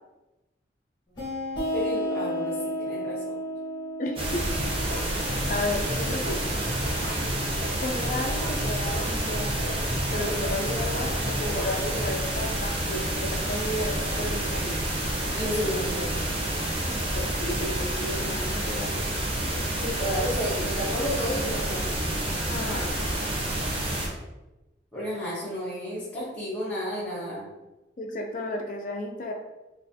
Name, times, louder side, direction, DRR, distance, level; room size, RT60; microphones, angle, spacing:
sound 1, 1.2-6.5, equal, 25° left, 1.4 m, -33 dB
voice 1, 1.7-3.4 15.3-16.1 19.8-22.0 24.9-27.5, equal, 5° left, -9 dB, 1.0 m, -31 dB
voice 2, 4.0-4.5 5.5-6.5 7.8-9.8 10.1-14.7 17.1-19.0 22.5-23.2 28.0-29.3, left 1 dB, 45° left, 2 dB, 0.4 m, -33 dB
sound 2, 4.2-24.1, right 1 dB, 30° right, 0.7 m, -29 dB
sound 3, 4.5-12.2, equal, 55° right, 1.2 m, -36 dB
4.2 x 2.5 x 2.7 m, 1.0 s
head